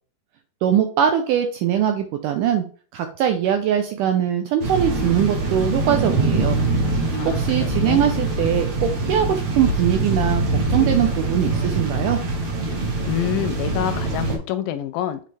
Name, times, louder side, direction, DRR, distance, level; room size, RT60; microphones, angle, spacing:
voice 1, 0.6-2.6 2.9-6.6 7.3-12.2, right 9 dB, 80° right, 1.9 m, -21 dB
sound 1, 4.6-14.4, right 2 dB, 55° right, 1.2 m, -23 dB
voice 2, 7.1-8.1 12.8-15.2, left 11 dB, 80° left, 2.2 m, -27 dB
7.4 x 4.0 x 3.4 m
omnidirectional pair, 4.4 m